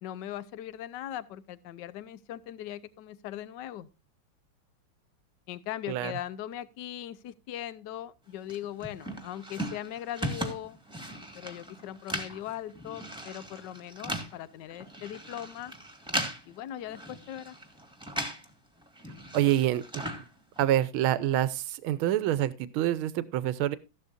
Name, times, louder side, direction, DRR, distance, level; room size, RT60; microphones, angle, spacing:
voice 1, 0.0-3.9 5.5-10.8 11.3-15.7 16.5-17.5, left 11 dB, 65° left, 17 dB, 1.3 m, -39 dB
sound 1, 8.5-18.5 18.8-20.9, right 1 dB, ahead, 1.8 m, -38 dB
voice 2, 19.3-19.8 20.6-23.8, right 13 dB, 85° right, 15 dB, 1.6 m, -26 dB
14.5 x 12.0 x 2.6 m, 0.27 s
omnidirectional pair, 2.2 m